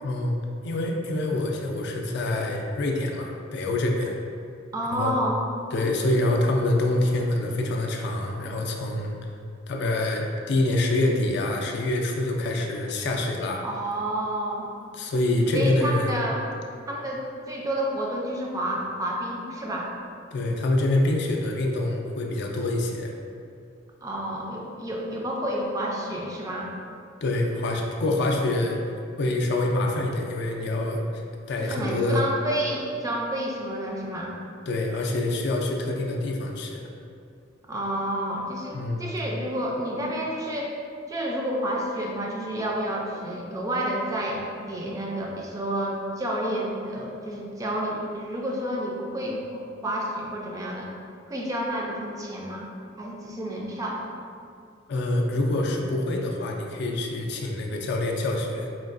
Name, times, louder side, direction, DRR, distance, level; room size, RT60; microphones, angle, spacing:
voice 1, 0.0-0.4 0.6-4.2 4.9-5.2 5.7-9.1 9.7-13.6 14.9-16.2 20.3-23.2 27.2-28.8 29.2-31.0 31.5-32.2 34.7-36.9 38.7-39.1 54.9-58.7, left 2 dB, 60° left, 1 dB, 0.4 m, -26 dB
voice 2, 4.7-5.4 13.6-14.7 15.5-16.4 16.9-19.9 24.0-26.7 31.6-34.3 37.7-40.7 41.1-50.9 51.3-52.7 53.0-54.0, right 1 dB, 20° right, -2 dB, 0.3 m, -30 dB
4.3 x 2.3 x 2.4 m, 2.3 s
head